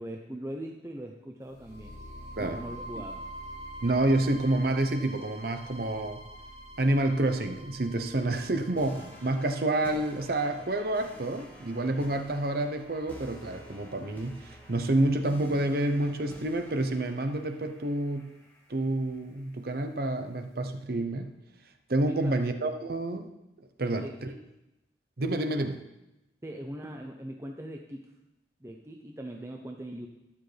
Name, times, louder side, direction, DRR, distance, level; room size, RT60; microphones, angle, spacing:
voice 1, 0.0-2.0 2.4-3.2 22.1-22.5 23.8-24.4 26.4-28.1 28.6-30.1, right 1 dB, 15° right, 2 dB, 0.6 m, -41 dB
sound 1, 1.5-15.5, right 1 dB, 85° left, 3.8 m, -47 dB
voice 2, 3.8-6.2 6.8-18.3 18.7-21.3 21.9-23.3 23.8-24.3 25.2-25.8, right 2 dB, 55° right, 7 dB, 0.8 m, -28 dB
sound 2, 8.8-19.7, equal, 10° left, 1.6 m, -50 dB
12.0 x 10.0 x 3.4 m, 0.93 s
head